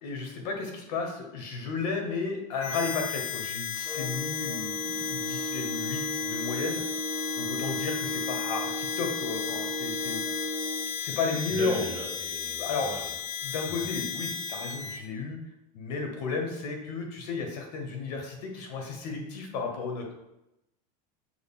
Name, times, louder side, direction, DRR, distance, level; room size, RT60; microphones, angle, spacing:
voice 1, 0.0-6.8 7.4-10.2 11.0-11.9 12.6-12.9 13.4-15.4 15.7-20.0, left 4 dB, 80° left, 3 dB, 1.1 m, -33 dB
Harmonica, 2.6-15.0, left 8 dB, 30° left, 0.3 m, -34 dB
sound 1, 3.8-10.9, right 1 dB, 10° right, 1.0 m, -35 dB
voice 2, 11.5-13.1 13.4-13.6, right 3 dB, 25° right, -8 dB, 1.4 m, -38 dB
6.3 x 2.2 x 3.6 m, 0.91 s
supercardioid pair, 175°, 21 cm